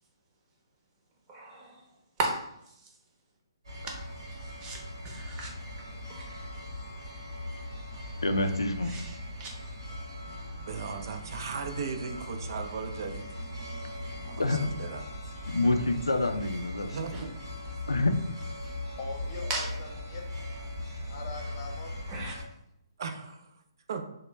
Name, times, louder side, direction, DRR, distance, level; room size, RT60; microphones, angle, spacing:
voice 1, 1.3-1.8 2.2-2.4 3.9-4.0 4.6-5.5 6.1-6.5 8.9-9.5 17.1-17.2 19.5-19.7 22.1-22.3, right 2 dB, 25° right, 0 dB, 0.7 m, -35 dB
sound 1, 3.6-22.4, left 1 dB, 80° right, 0.9 m, -39 dB
voice 2, 8.2-8.9 14.4-14.6 15.5-17.0 17.9-18.1, left 2 dB, 85° left, 7 dB, 0.3 m, -27 dB
voice 3, 10.7-13.3 14.2-15.3 16.9-17.3 23.0-23.5 23.9-24.0, right 5 dB, 55° right, 6 dB, 0.4 m, -37 dB
voice 4, 18.6-20.3 21.1-22.0 22.2-22.5, left 3 dB, 45° left, 1 dB, 0.7 m, -42 dB
3.0 x 2.1 x 3.1 m, 0.79 s
figure-of-eight pair, 130°, 2 cm